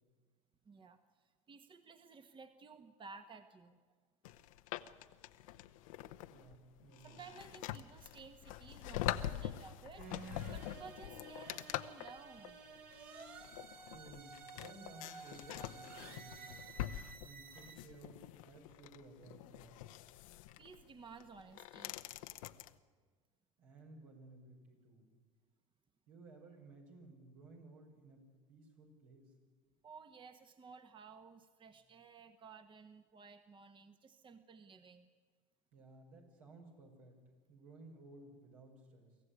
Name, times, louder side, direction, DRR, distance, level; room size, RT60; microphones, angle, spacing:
voice 1, 0.6-3.8 7.0-12.6 20.6-22.0 29.8-35.1, right 5 dB, 30° right, 8 dB, 1.4 m, -55 dB
sound 1, 4.2-22.7, left 13 dB, 75° left, 0.9 m, -45 dB
voice 2, 6.3-7.2 13.9-17.0 17.2-19.8 23.6-25.2 26.1-29.3 35.7-37.2 37.5-39.2, right 3 dB, 80° right, 0 dB, 6.1 m, -57 dB
sound 2, 10.0-17.8, right 5 dB, 55° right, 3.4 m, -53 dB
24.0 x 15.0 x 9.9 m, 1.5 s
hypercardioid pair, 80°, 18 cm